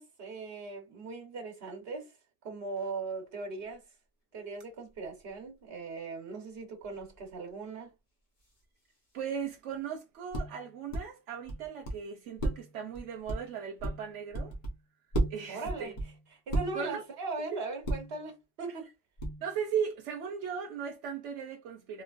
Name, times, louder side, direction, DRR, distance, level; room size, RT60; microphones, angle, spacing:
voice 1, 0.0-2.2 2.4-3.8 4.3-7.9 15.5-16.0 16.3-18.9, right 3 dB, 60° right, 1.3 m, -39 dB
sound 1, 2.8-2.9 7.0-7.2 9.5-9.7 10.3-11.0 11.5-11.9 12.4-14.8 15.1-17.0 17.8-18.3 19.2-19.6, right 1 dB, 45° left, 1.2 m, -34 dB
voice 2, 9.1-14.5 15.3-15.9 16.7-17.0 17.5-17.6 19.4-22.0, right 7 dB, 85° right, 1.0 m, -37 dB
3.3 x 3.0 x 2.4 m
omnidirectional pair, 1.2 m